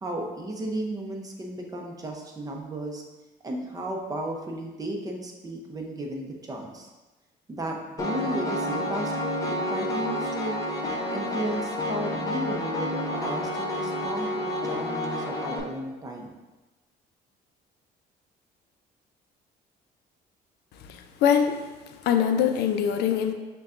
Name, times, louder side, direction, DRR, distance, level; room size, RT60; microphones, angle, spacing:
voice 1, 0.0-3.0 3.4-6.9 7.5-10.6 11.1-16.3, right 1 dB, 20° right, 1 dB, 0.6 m, -34 dB
Piano, 8.0-15.6, left 1 dB, 20° left, 0.6 m, -29 dB
voice 2, 20.9-21.6 22.0-23.3, left 8 dB, 75° left, 7 dB, 0.4 m, -23 dB
6.3 x 2.2 x 2.5 m, 1.2 s
cardioid pair, 110°, 17 cm